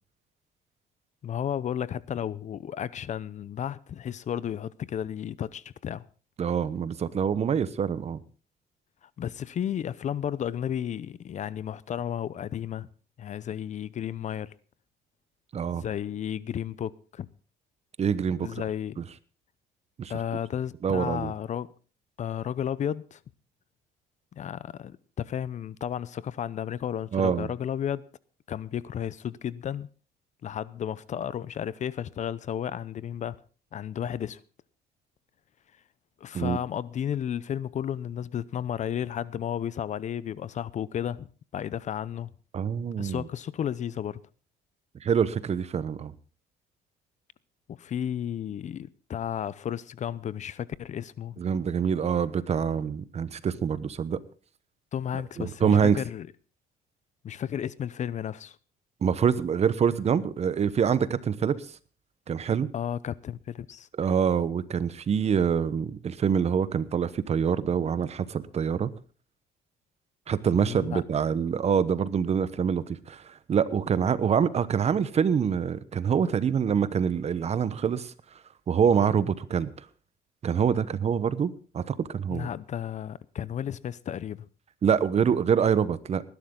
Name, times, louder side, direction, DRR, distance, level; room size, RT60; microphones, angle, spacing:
voice 1, 1.2-6.0 9.0-12.9 13.2-14.5 15.7-17.3 18.4-19.0 20.1-21.7 22.2-23.2 24.3-28.0 28.5-29.9 30.4-33.4 33.7-34.4 36.2-41.3 41.5-42.3 43.0-44.2 47.7-51.4 54.9-56.3 57.2-58.6 62.7-63.9 70.5-71.0 82.3-84.5, left 9 dB, 45° left, 0.7 m, -33 dB
voice 2, 6.4-8.2 15.5-15.8 18.0-18.5 20.0-20.1 20.8-21.3 27.1-27.5 36.3-36.6 42.5-43.2 45.0-46.1 51.4-54.2 55.1-56.0 59.0-61.7 62.3-62.7 64.0-68.9 70.3-78.1 78.7-79.7 80.4-82.5 84.8-86.2, right 7 dB, 40° right, 1.0 m, -25 dB
19.0 x 12.0 x 3.8 m
cardioid pair, 110°, 17 cm